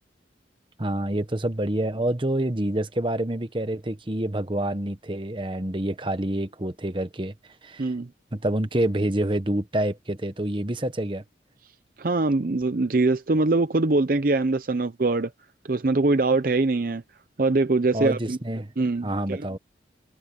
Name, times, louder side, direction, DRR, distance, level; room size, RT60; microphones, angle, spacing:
voice 1, 0.8-7.3 7.6-7.9 8.3-11.2 17.9-18.7 19.0-19.6, right 1 dB, 30° right, 1.2 m, -27 dB
voice 2, 7.8-8.1 12.0-15.3 15.6-17.0 17.4-18.4 18.8-19.4, right 3 dB, 50° right, 0.6 m, -23 dB
head